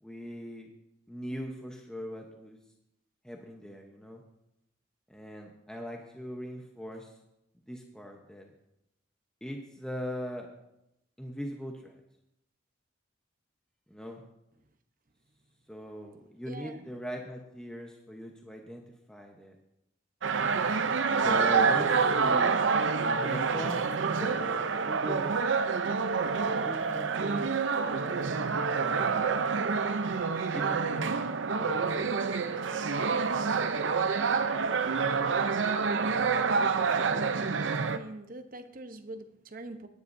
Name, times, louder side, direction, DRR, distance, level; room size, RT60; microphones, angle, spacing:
voice 1, 0.0-0.7 1.1-2.6 3.2-4.2 5.1-7.1 7.7-8.5 9.4-10.5 11.2-12.0 13.9-14.2 15.7-19.6 21.2-22.6 23.2-25.8 26.4-27.5 28.8-29.2 30.5-32.5 32.9-33.5 34.6-35.0, equal, 5° left, 1 dB, 0.9 m, -40 dB
voice 2, 16.5-16.8 37.8-39.9, right 2 dB, 45° right, 7 dB, 0.9 m, -43 dB
sound 1, 20.2-38.0, right 5 dB, 75° right, 0.6 m, -27 dB
17.5 x 10.5 x 2.7 m, 0.85 s
head